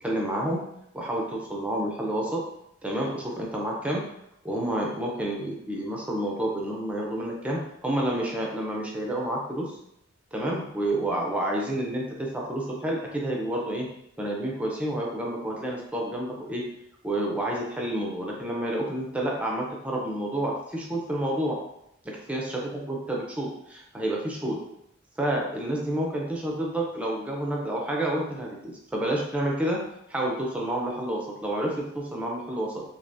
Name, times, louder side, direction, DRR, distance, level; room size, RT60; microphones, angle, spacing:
voice 1, 0.0-0.6 0.9-2.4 2.8-4.0 4.4-9.7 10.3-13.9 14.2-16.6 17.0-21.6 22.1-24.6 25.2-29.8 30.1-32.8, right 1 dB, 5° right, -2 dB, 0.5 m, -29 dB
3.3 x 2.9 x 2.7 m, 0.78 s
head